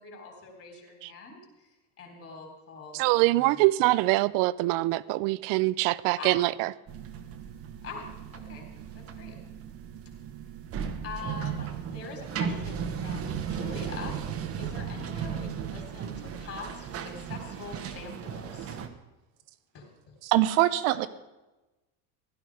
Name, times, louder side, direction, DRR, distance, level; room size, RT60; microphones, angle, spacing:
voice 1, 0.0-3.6 6.2-6.4 7.8-8.1 8.3-8.7 8.9-9.4 11.0-14.2 14.6-18.8 19.7-20.1, left 4 dB, 30° left, 3.9 m, -43 dB
voice 2, 2.9-6.7, right 19 dB, 50° right, 0.5 m, -24 dB
sound 1, 6.9-18.9, right 7 dB, 35° right, 1.2 m, -36 dB
voice 3, 20.2-21.1, right 14 dB, 70° right, 1.1 m, -23 dB
15.5 x 12.5 x 4.9 m
cardioid pair, 155°, 42 cm